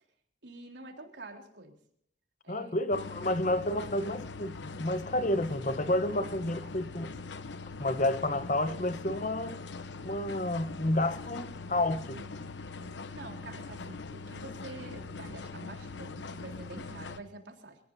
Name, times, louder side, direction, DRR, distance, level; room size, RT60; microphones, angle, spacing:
voice 1, 0.4-1.8 2.4-2.9 12.1-12.5 13.1-17.8, right 2 dB, 90° right, 3.8 m, -47 dB
voice 2, 2.5-7.1 7.8-9.6 10.0-12.2, left 1 dB, 45° left, 1.0 m, -30 dB
sound 1, 2.9-17.2, left 3 dB, 85° left, 1.0 m, -42 dB
27.0 x 18.5 x 2.7 m
head